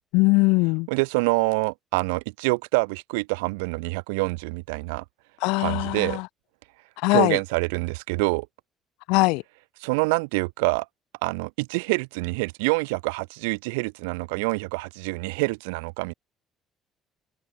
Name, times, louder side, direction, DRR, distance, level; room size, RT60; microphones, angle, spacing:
voice 1, 0.1-0.9 5.4-6.3 7.0-7.4 9.1-9.4, left 27 dB, 80° left, 3.6 m, -21 dB
voice 2, 0.9-5.0 5.6-6.2 7.1-8.5 9.8-10.8 11.2-16.1, right 29 dB, 85° right, 2.8 m, -26 dB
open air
supercardioid pair, 65°, 0 cm